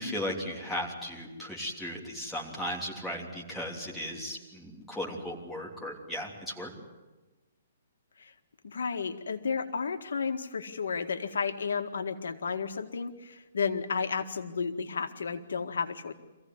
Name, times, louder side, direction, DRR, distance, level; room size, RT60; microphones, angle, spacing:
voice 1, 0.0-6.7, equal, 5° left, -2 dB, 3.1 m, -36 dB
voice 2, 8.6-16.1, left 5 dB, 85° left, 7 dB, 1.8 m, -32 dB
25.5 x 16.0 x 9.6 m, 1.1 s
hypercardioid pair, 165°, 0 cm